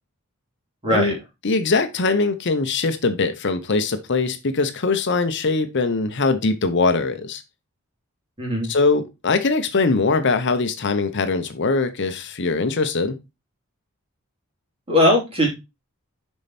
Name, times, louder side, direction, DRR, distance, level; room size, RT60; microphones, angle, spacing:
voice 1, 0.8-1.1 8.4-8.7 14.9-15.5, left 1 dB, 25° right, 3.4 m, -19 dB
voice 2, 1.4-7.4 8.6-13.2, left 3 dB, 55° left, 0.8 m, -21 dB
6.6 x 5.5 x 4.2 m
head